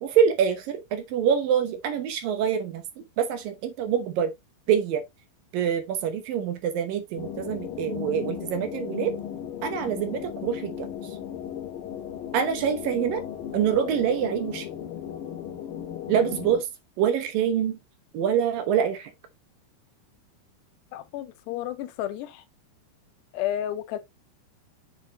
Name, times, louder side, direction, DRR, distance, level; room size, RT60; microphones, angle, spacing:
voice 1, 0.0-4.3 4.7-5.0 5.5-9.2 9.6-10.9 12.3-13.2 13.5-14.7 16.1-16.7 17.0-17.8 18.1-19.1, right 8 dB, 70° right, 2.5 m, -25 dB
sound 1, 7.2-16.6, left 9 dB, 65° left, 3.0 m, -36 dB
voice 2, 20.9-22.4 23.3-24.0, left 12 dB, 85° left, 2.9 m, -31 dB
7.5 x 7.1 x 3.0 m
omnidirectional pair, 4.7 m